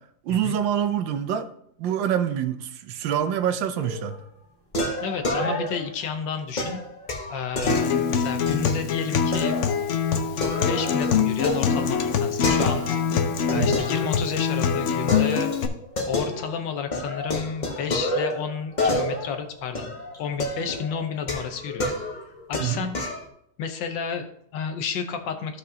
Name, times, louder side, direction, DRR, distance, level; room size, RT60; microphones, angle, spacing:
voice 1, 0.2-1.5 1.8-4.2 7.7-7.8 13.5-13.7 22.6-22.9, right 9 dB, 85° right, 9 dB, 1.4 m, -26 dB
sound 1, 3.8-4.2 4.7-6.0 6.6-8.8 9.3-9.8 10.1-13.1 13.5-14.6 15.1-16.6 16.9-23.2, left 1 dB, 30° left, 1.0 m, -29 dB
voice 2, 5.0-6.8 7.3-9.6 10.6-12.9 13.5-15.5 16.1-21.9 22.5-23.0 23.6-25.6, left 6 dB, 80° left, 7 dB, 1.6 m, -31 dB
Acoustic guitar, 7.7-15.7, left 6 dB, 65° left, 0.7 m, -24 dB
14.5 x 5.3 x 2.8 m, 0.69 s
omnidirectional pair, 2.0 m